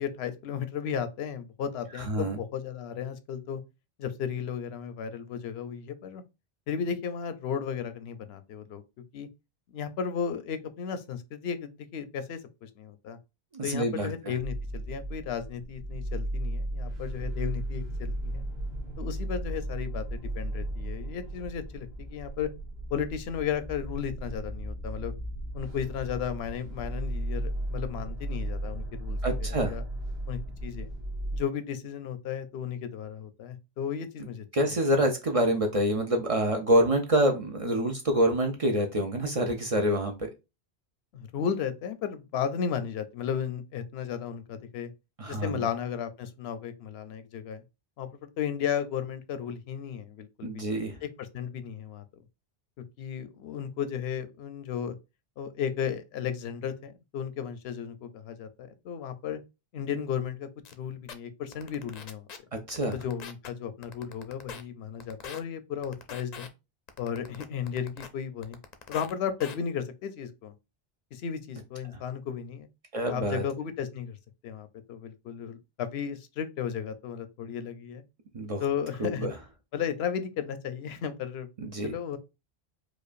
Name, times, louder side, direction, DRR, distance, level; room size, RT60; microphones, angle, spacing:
voice 1, 0.0-3.6 4.0-6.2 6.7-8.8 9.1-9.3 9.7-13.2 13.6-18.4 19.0-22.5 22.9-25.1 25.5-29.8 30.3-30.9 31.3-34.4 41.1-44.9 45.3-47.6 48.0-50.6 51.0-52.0 53.0-54.9 55.4-59.4 59.7-62.3 62.9-66.5 67.0-68.6 68.9-70.5 71.1-72.7 73.1-74.2 74.4-78.0 78.6-79.3 79.7-81.5 81.8-82.2, left 8 dB, 85° left, 0.8 m, -34 dB
voice 2, 2.0-2.4 13.5-14.1 29.2-29.7 34.5-40.3 45.2-45.6 50.4-51.0 62.7-63.0 72.9-73.4 78.3-78.6 79.0-79.3 81.6-81.9, right 1 dB, 45° right, 0.5 m, -26 dB
sound 1, 14.4-31.4, right 1 dB, 80° right, 1.5 m, -35 dB
sound 2, 60.6-60.7 61.1-61.2 61.5-62.4 62.7-63.5 63.8-64.6 65.0-65.4 65.8-66.5 66.9-68.1 68.4-69.1 69.4-69.6, left 6 dB, 50° left, 0.5 m, -42 dB
4.8 x 2.3 x 2.5 m
omnidirectional pair, 1.0 m